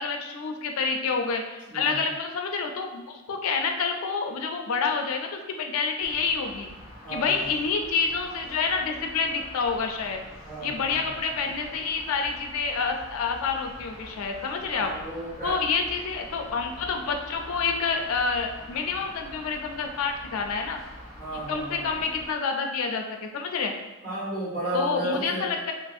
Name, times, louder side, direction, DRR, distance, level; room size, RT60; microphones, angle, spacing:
voice 1, 0.0-6.7 7.1-10.2 10.6-14.9 15.4-20.8 21.5-23.7 24.7-25.7, left 5 dB, 75° left, 4 dB, 0.3 m, -28 dB
voice 2, 1.6-2.1 7.0-7.5 10.4-11.1 14.7-15.6 21.2-22.0 24.0-25.5, right 1 dB, 40° right, -8 dB, 1.2 m, -33 dB
sound 1, 6.0-22.3, left 1 dB, 15° right, 0.8 m, -45 dB
2.8 x 2.6 x 2.3 m, 1.1 s
head